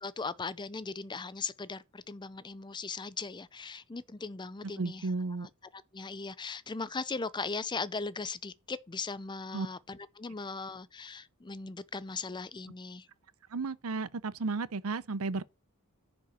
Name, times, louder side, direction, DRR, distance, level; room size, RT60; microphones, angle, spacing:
voice 1, 0.0-5.1 5.4-13.1, left 4 dB, 20° left, 0.5 m, -39 dB
voice 2, 4.8-5.5 9.5-9.7 13.5-15.4, right 3 dB, 70° right, 0.6 m, -33 dB
10.0 x 5.3 x 6.3 m
head